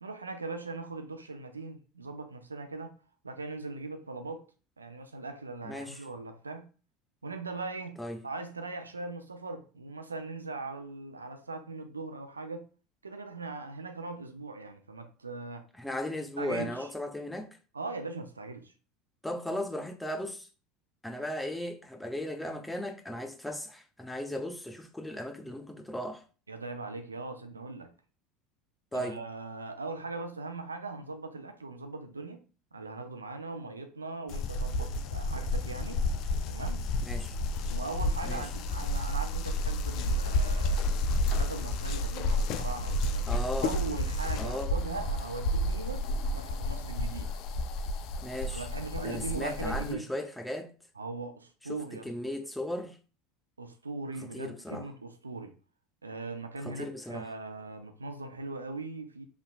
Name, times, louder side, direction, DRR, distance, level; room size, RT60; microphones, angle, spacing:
voice 1, 0.0-2.9 3.2-4.5 4.8-6.7 7.2-12.7 13.0-15.7 16.4-16.9 17.7-18.7 26.5-27.9 28.9-32.4 32.7-36.0 36.5-36.9 37.7-40.9 41.2-46.0 46.3-47.3 48.5-50.1 51.0-52.1 53.6-55.5 56.0-59.2, right 3 dB, 85° right, 0.5 m, -40 dB
voice 2, 5.6-6.0 8.0-8.2 15.8-17.6 19.2-20.5 21.0-26.2 28.9-29.2 37.1-37.4 38.2-38.4 43.3-43.7 44.4-44.7 48.2-48.7 49.0-50.7 51.7-53.0 54.2-54.9 56.6-57.3, left 1 dB, 5° left, 0.7 m, -36 dB
sound 1, 34.3-49.9, left 1 dB, 50° left, 0.5 m, -31 dB
5.6 x 3.6 x 2.3 m
figure-of-eight pair, 70°, 0 cm